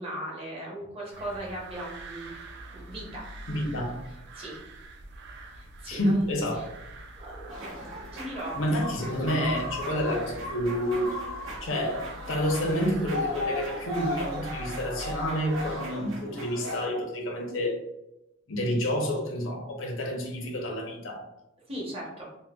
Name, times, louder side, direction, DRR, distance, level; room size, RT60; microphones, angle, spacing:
voice 1, 0.0-2.5 2.9-3.3 4.3-4.6 5.5-6.7 7.2-8.6 21.7-22.3, right 1 dB, 30° right, -4 dB, 0.8 m, -38 dB
sound 1, 1.1-15.8, right 1 dB, 55° right, 0.3 m, -45 dB
voice 2, 3.5-4.0 5.9-6.6 8.6-11.2 11.6-17.8 18.5-21.2, equal, 70° left, 1 dB, 0.7 m, -29 dB
sound 2, 7.5-16.9, left 1 dB, 75° right, 1.0 m, -36 dB
3.8 x 2.1 x 2.3 m, 0.89 s
head